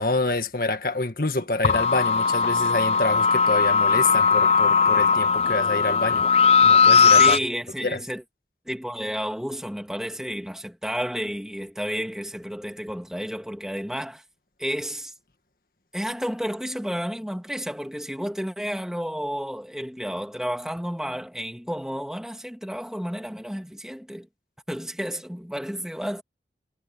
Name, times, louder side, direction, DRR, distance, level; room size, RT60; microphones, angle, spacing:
voice 1, 0.0-6.2 6.6-7.4 7.8-8.0, left 2 dB, 50° left, 1.8 m, -27 dB
sound 1, 1.6-7.4, left 5 dB, 35° left, 0.3 m, -18 dB
voice 2, 7.2-8.2 8.7-14.2 14.6-15.1 15.9-24.3 24.7-26.2, equal, 5° right, 2.7 m, -31 dB
head